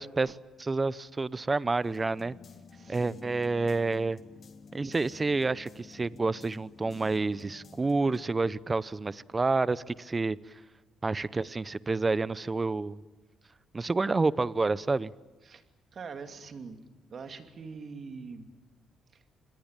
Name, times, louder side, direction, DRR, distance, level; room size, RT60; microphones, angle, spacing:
voice 1, 0.0-2.3 2.9-4.2 4.7-10.4 11.0-13.0 13.7-15.1, right 3 dB, 25° right, 17 dB, 0.7 m, -29 dB
sound 1, 1.8-8.2, left 4 dB, 50° left, 2.1 m, -51 dB
voice 2, 2.7-3.4 15.4-15.6 15.9-16.8 17.1-18.5 19.1-19.2, right 5 dB, 50° right, 6 dB, 2.7 m, -43 dB
26.5 x 21.0 x 9.0 m, 1.2 s
cardioid pair, 90°, 0 cm